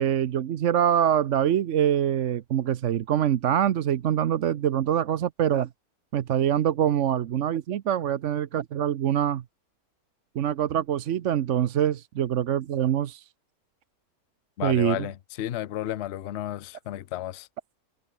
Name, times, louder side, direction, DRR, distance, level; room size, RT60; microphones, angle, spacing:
voice 1, 0.0-5.7 6.1-9.4 10.3-13.3 14.6-15.0, right 10 dB, 60° right, 1.0 m, -24 dB
voice 2, 14.6-17.5, left 13 dB, 55° left, 0.8 m, -32 dB
omnidirectional pair, 1.6 m